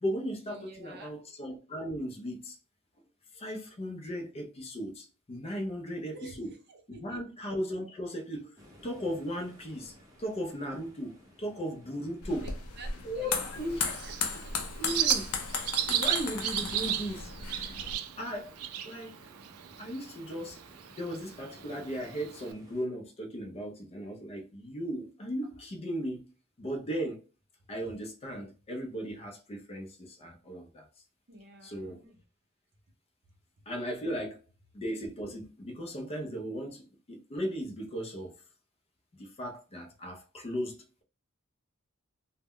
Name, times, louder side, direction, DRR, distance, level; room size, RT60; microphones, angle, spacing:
voice 1, 0.0-2.6 3.3-6.5 6.9-8.6 8.8-12.5 13.0-13.9 14.8-15.3 15.9-17.3 18.2-18.5 18.8-19.2 19.8-20.6 21.0-26.3 26.6-27.2 27.7-30.9 31.6-32.0 33.7-34.4 34.7-38.4 39.1-41.0, equal, 30° left, 0.4 m, -37 dB
voice 2, 0.5-1.2 6.1-7.2 12.4-13.5 13.8-14.5 15.5-15.8 31.3-32.2, right 3 dB, 50° right, 0.6 m, -50 dB
sound 1, 8.6-22.8, left 1 dB, 15° right, 0.7 m, -56 dB
sound 2, 12.2-17.9, left 5 dB, 80° left, 0.5 m, -36 dB
Bird, 13.5-22.5, right 11 dB, 85° right, 0.3 m, -35 dB
2.1 x 2.1 x 3.5 m
head